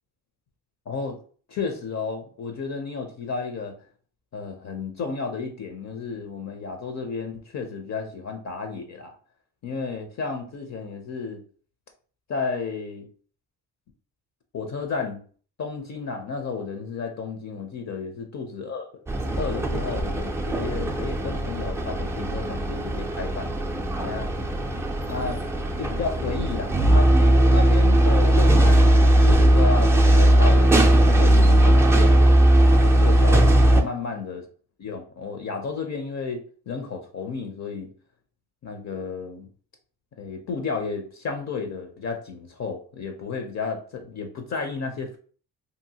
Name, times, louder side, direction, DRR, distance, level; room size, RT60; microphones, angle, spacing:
voice 1, 0.9-1.2 1.5-3.7 4.3-9.1 9.6-11.4 12.3-13.1 14.5-15.2 15.6-18.9 19.4-23.5 24.0-24.3 25.1-25.4 25.8-28.9 29.2-32.2 32.7-34.4 34.8-36.4 36.7-37.9 38.6-39.5 40.2-45.2, left 4 dB, 45° left, 4 dB, 0.6 m, -32 dB
sound 1, 19.1-33.8, right 1 dB, 10° right, 0.3 m, -18 dB
2.8 x 2.5 x 2.7 m, 0.43 s
cardioid pair, 85°, 39 cm